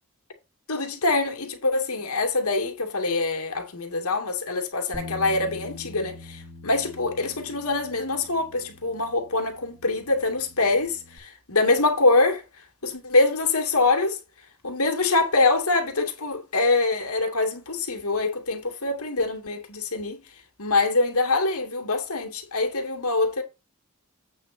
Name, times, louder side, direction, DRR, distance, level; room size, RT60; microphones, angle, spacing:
voice 1, 0.7-12.4 12.8-14.2 14.6-20.2 20.6-23.4, left 3 dB, 80° left, 2.3 m, -24 dB
Bass guitar, 4.9-11.2, left 2 dB, 25° left, 2.3 m, -44 dB
8.5 x 3.9 x 6.0 m
head